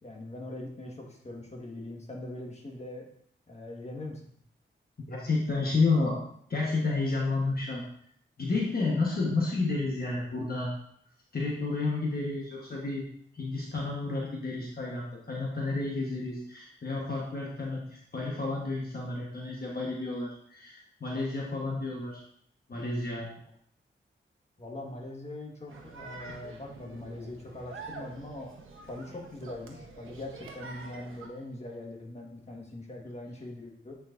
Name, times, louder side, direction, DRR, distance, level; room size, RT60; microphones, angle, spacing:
voice 1, 0.0-3.1 3.5-4.2 24.6-28.5 28.9-34.0, left 1 dB, 35° left, 0 dB, 1.4 m, -42 dB
voice 2, 5.1-6.2 6.5-7.8 8.4-10.7 11.3-13.0 13.3-22.2 22.7-23.3, left 3 dB, 50° left, -3 dB, 1.2 m, -31 dB
sound 1, 25.7-31.3, right 4 dB, 85° right, 0.9 m, -46 dB
8.9 x 4.7 x 2.5 m, 0.66 s
cardioid pair, 70°, 20 cm